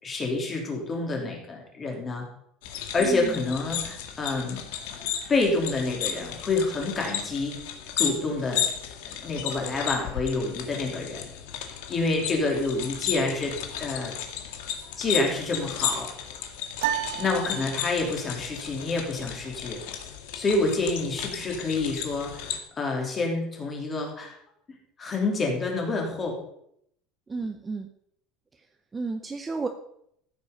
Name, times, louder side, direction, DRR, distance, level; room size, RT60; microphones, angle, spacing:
voice 1, 0.0-2.2 2.9-4.6 5.3-7.5 8.0-8.6 9.0-11.3 11.9-14.1 15.0-16.1 17.1-19.8 20.3-24.3 25.0-26.4, left 3 dB, 20° left, 0 dB, 3.1 m, -28 dB
sound 1, 2.6-22.6, left 9 dB, 80° left, 2.0 m, -34 dB
voice 2, 3.0-3.4 27.3-27.9 28.9-29.7, right 3 dB, 15° right, 6 dB, 0.7 m, -32 dB
sound 2, 16.8-18.3, right 12 dB, 85° right, 1.3 m, -32 dB
14.5 x 8.0 x 5.4 m, 0.71 s
cardioid pair, 170°, 0 cm